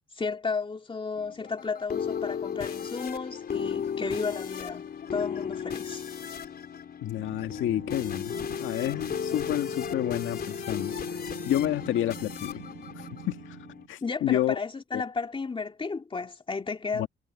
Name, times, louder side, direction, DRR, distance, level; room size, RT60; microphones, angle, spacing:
voice 1, 0.1-6.0 14.0-17.1, left 4 dB, 25° left, 2.6 m, -33 dB
sound 1, 1.2-13.9, left 7 dB, 50° left, 4.2 m, -35 dB
voice 2, 7.0-10.9 11.5-12.6 13.0-13.6 13.9-14.6 14.9-15.0 16.9-17.1, left 12 dB, 80° left, 1.8 m, -29 dB
sound 2, 7.2-13.9, right 14 dB, 85° right, 4.9 m, -46 dB
cardioid pair, 90°, 20 cm